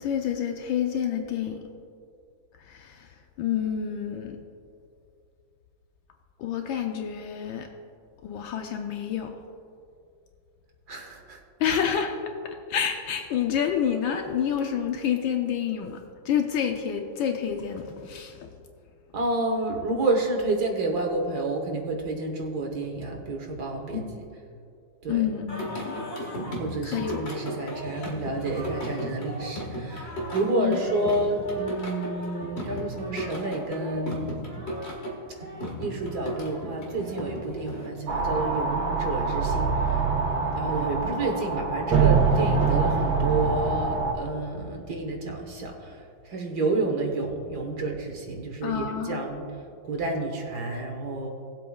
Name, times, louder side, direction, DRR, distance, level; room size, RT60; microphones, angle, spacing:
voice 1, 0.0-1.6 2.7-3.1 3.4-4.4 6.4-7.7 8.2-9.4 11.6-12.1 12.4-16.0 16.2-18.5 23.9-24.2 25.1-26.0 26.8-27.2 30.6-30.8 48.6-49.3, left 8 dB, 80° left, 4 dB, 1.4 m, -28 dB
voice 2, 10.9-11.8 19.1-24.0 25.0-25.2 26.6-34.3 35.8-40.0 40.6-49.5 49.8-51.3, right 2 dB, 55° right, 2 dB, 1.7 m, -29 dB
Singing, 25.5-37.9, equal, 35° left, 1.8 m, -36 dB
sound 1, 38.1-44.1, right 5 dB, 75° right, 2.0 m, -24 dB
19.0 x 7.7 x 2.4 m, 2.4 s
omnidirectional pair, 2.2 m